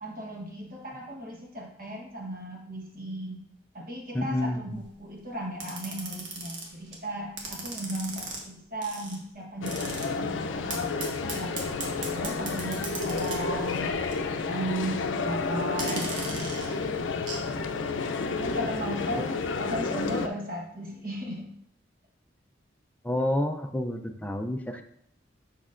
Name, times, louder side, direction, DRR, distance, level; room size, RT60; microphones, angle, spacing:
voice 1, 0.0-3.4 3.7-11.5 12.1-13.9 14.5-16.5 18.4-21.5, right 1 dB, 50° right, -1 dB, 1.2 m, -36 dB
voice 2, 4.1-4.8 23.0-24.8, left 1 dB, 10° left, 4 dB, 0.4 m, -29 dB
sound 1, 4.7-5.0 5.6-7.0 7.4-8.4 8.8-9.2 9.7-10.1 10.7-14.4 14.6-14.9 15.7-17.5 17.8-17.9, right 3 dB, 80° right, 1.2 m, -38 dB
sound 2, 9.6-20.3, left 4 dB, 80° left, 0.5 m, -31 dB
6.4 x 5.9 x 2.5 m, 0.72 s
head